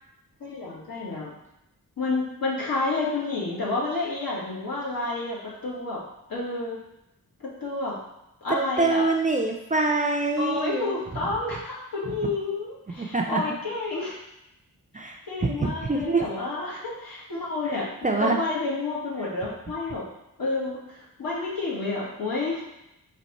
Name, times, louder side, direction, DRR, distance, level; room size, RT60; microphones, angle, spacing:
voice 1, 0.4-1.3 2.0-6.0 6.3-6.8 7.4-8.0 8.4-9.0 10.4-14.1 15.3-17.9 18.2-20.0 20.4-22.6, left 2 dB, 75° left, -5 dB, 1.6 m, -30 dB
voice 2, 8.8-10.9 12.1-12.2 12.9-13.4 14.9-16.2 18.0-18.4, right 3 dB, 20° right, 1 dB, 0.4 m, -25 dB
4.4 x 3.0 x 4.1 m, 0.86 s
wide cardioid pair, 130°, 35 cm